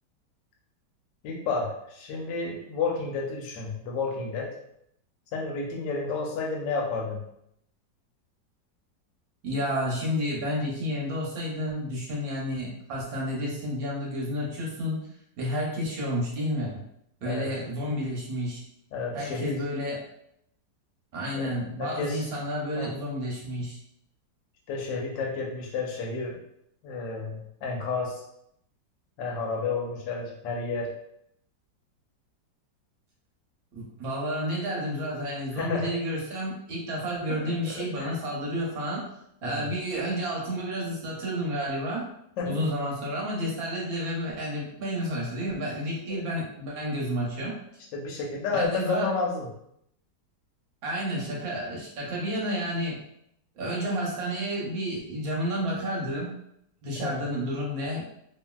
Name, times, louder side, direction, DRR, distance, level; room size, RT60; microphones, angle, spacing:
voice 1, 1.2-4.5 5.3-7.2 17.2-17.5 18.9-19.6 21.3-22.3 22.7-22.9 24.7-26.4 26.8-28.2 29.2-30.9 35.6-35.9 37.4-38.1 39.4-39.7 42.4-42.6 46.1-46.2 47.9-49.5 57.0-57.2, left 4 dB, 80° left, -1 dB, 1.4 m, -31 dB
voice 2, 9.4-15.0 15.4-16.8 17.2-18.6 19.1-20.0 21.1-23.8 33.7-39.1 39.4-42.1 42.4-47.5 48.5-49.1 50.8-53.0 53.5-56.3 56.8-58.1, equal, 65° right, -4 dB, 1.1 m, -30 dB
3.0 x 2.6 x 2.2 m, 0.76 s
omnidirectional pair, 2.0 m